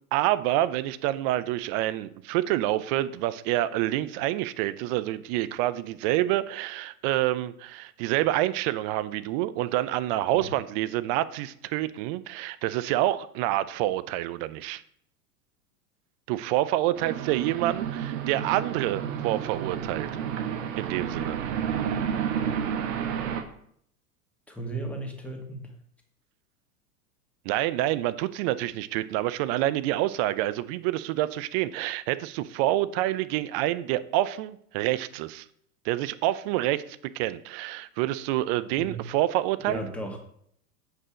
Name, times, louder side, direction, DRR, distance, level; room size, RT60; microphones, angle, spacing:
voice 1, 0.1-14.8 16.3-20.1 20.8-21.4 27.4-35.5 35.8-39.9, right 15 dB, 40° right, 16 dB, 0.6 m, -27 dB
sound 1, 17.0-23.4, right 8 dB, 55° right, 1.3 m, -31 dB
voice 2, 22.4-22.7 24.5-25.7 38.8-39.0 39.7-40.2, right 1 dB, 5° left, 0 dB, 2.1 m, -36 dB
8.3 x 5.4 x 5.0 m, 0.67 s
hypercardioid pair, 95°, 47 cm